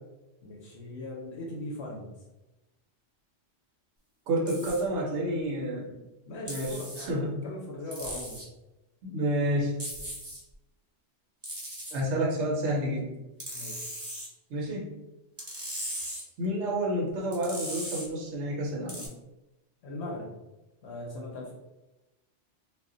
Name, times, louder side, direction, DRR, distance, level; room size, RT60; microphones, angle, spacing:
voice 1, 0.4-2.1 6.3-8.4 13.5-13.9 19.8-20.3 20.8-21.5, left 1 dB, 70° left, -2 dB, 0.8 m, -39 dB
voice 2, 4.3-6.0 6.5-7.5 9.0-9.8 11.9-13.1 14.5-14.9 16.4-19.1, right 1 dB, 70° right, -3 dB, 0.9 m, -29 dB
sound 1, 4.5-4.8 6.5-7.1 7.9-8.5 9.8-10.4 11.4-12.0 13.4-14.3 15.4-16.2 17.3-18.1 18.9-19.1, right 1 dB, 15° right, 0.5 m, -38 dB
2.1 x 2.1 x 3.7 m, 1.0 s
omnidirectional pair, 1.3 m